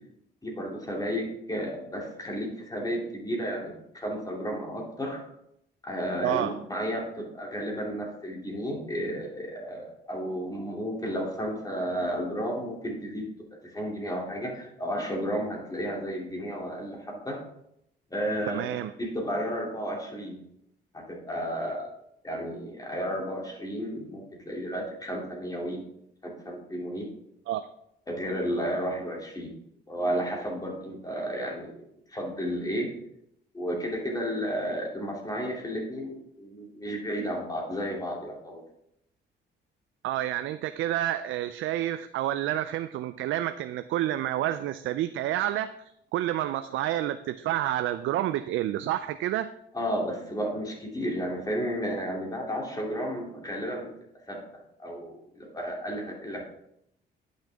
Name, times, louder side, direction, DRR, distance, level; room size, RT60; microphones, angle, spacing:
voice 1, 0.4-5.2 5.8-13.3 13.6-17.4 18.1-20.4 20.9-21.9 22.2-25.8 26.2-27.1 28.1-29.5 29.9-31.8 32.1-32.9 33.5-38.6 49.7-53.9 54.3-54.4 54.8-56.4, equal, 20° left, -2 dB, 2.7 m, -32 dB
voice 2, 18.5-18.9 27.5-27.7 40.0-49.5, right 13 dB, 80° right, 10 dB, 0.4 m, -29 dB
10.0 x 6.3 x 3.5 m, 0.77 s
cardioid pair, 90°, 20 cm